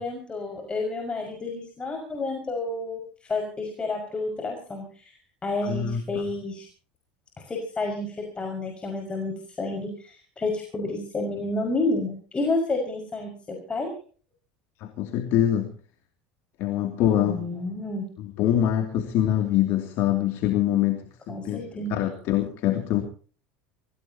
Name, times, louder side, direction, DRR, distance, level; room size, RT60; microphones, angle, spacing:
voice 1, 0.0-5.2 5.4-6.7 7.5-13.9 17.2-18.1 21.3-22.0, left 2 dB, 20° left, 1 dB, 5.8 m, -30 dB
voice 2, 5.6-6.0 14.8-15.7 16.6-17.4 18.4-21.6 21.9-23.0, left 11 dB, 60° left, 5 dB, 2.7 m, -24 dB
25.0 x 17.5 x 2.9 m, 0.41 s
supercardioid pair, 95°, 5 cm